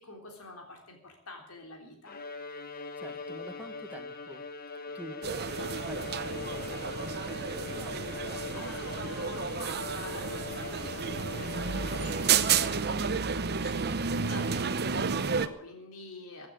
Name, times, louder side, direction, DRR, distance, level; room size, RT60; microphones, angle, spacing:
voice 1, 0.0-2.2 8.5-16.5, left 2 dB, 85° left, 2 dB, 3.7 m, -47 dB
Bowed string instrument, 2.1-13.1, left 4 dB, 45° left, 1.4 m, -41 dB
voice 2, 2.9-9.1, right 1 dB, 5° right, 5 dB, 1.7 m, -48 dB
sound 1, 5.2-15.5, right 6 dB, 50° right, 0.8 m, -31 dB
15.5 x 9.6 x 8.5 m, 0.65 s
head